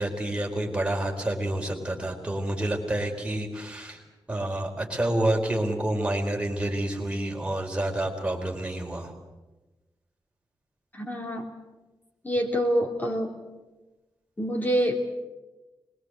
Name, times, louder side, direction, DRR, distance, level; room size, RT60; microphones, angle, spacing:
voice 1, 0.0-4.0 4.3-9.1, right 1 dB, 15° right, 1 dB, 4.5 m, -28 dB
voice 2, 10.9-11.5 12.2-13.4 14.4-15.0, equal, 20° left, 2 dB, 3.1 m, -26 dB
25.0 x 22.0 x 8.1 m, 1.1 s
wide cardioid pair, 140°, 8 cm